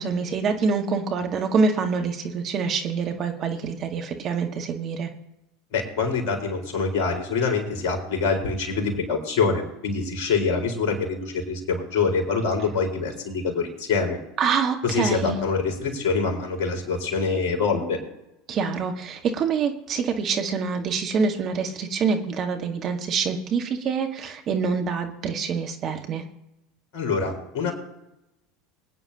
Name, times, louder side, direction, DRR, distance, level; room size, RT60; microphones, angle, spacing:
voice 1, 0.0-5.1 14.4-15.4 18.5-26.2, right 5 dB, 40° right, 4 dB, 1.6 m, -26 dB
voice 2, 5.7-14.2 14.8-18.0 26.9-27.7, left 4 dB, 55° left, 1 dB, 4.3 m, -25 dB
24.0 x 9.5 x 2.9 m, 0.89 s
figure-of-eight pair, 75°, 0 cm